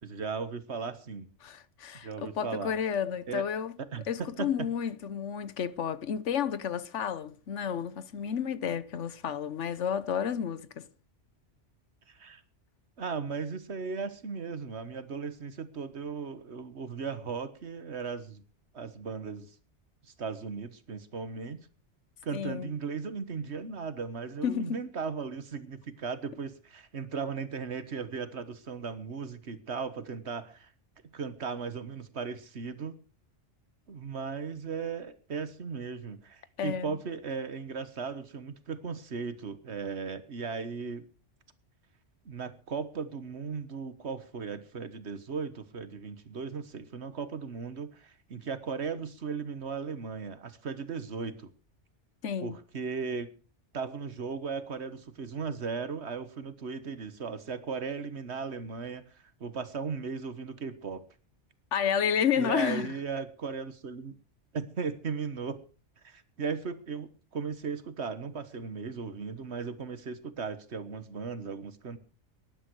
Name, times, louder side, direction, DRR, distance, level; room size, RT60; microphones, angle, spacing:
voice 1, 0.0-1.3 2.0-2.7 3.3-3.5 3.8-4.7 12.1-12.4 13.0-18.4 18.7-19.5 20.0-21.7 22.2-30.7 31.0-33.0 33.9-41.0 42.2-51.5 52.4-53.3 53.7-61.0 62.3-64.1 64.5-65.6 66.0-72.0, right 5 dB, 70° right, 1.6 m, -37 dB
voice 2, 1.4-3.7 4.1-10.9 22.3-22.7 24.4-24.8 36.6-37.0 52.2-52.6 61.7-62.9, left 8 dB, 90° left, 1.3 m, -31 dB
19.5 x 11.0 x 4.8 m
omnidirectional pair, 1.2 m